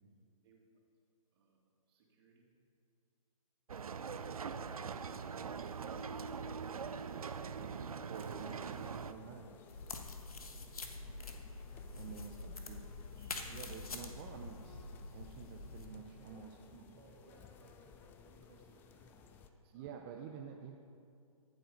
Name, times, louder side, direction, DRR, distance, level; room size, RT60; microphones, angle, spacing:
voice 1, 1.9-2.5 11.0-11.9 12.6-13.5 17.0-20.1, right 3 dB, 45° right, -1 dB, 2.5 m, -67 dB
sound 1, 3.7-9.1, right 6 dB, 75° right, 0.6 m, -42 dB
voice 2, 8.0-9.5 11.9-12.4 12.6-12.8 13.5-14.8 15.1-16.9 19.7-20.8, right 7 dB, 25° right, 2 dB, 0.7 m, -49 dB
sound 2, 8.1-19.5, left 6 dB, 10° left, 0.4 m, -59 dB
sound 3, 9.7-15.9, left 3 dB, 75° left, 1.4 m, -46 dB
14.0 x 7.7 x 5.2 m, 2.4 s
figure-of-eight pair, 135°, 19 cm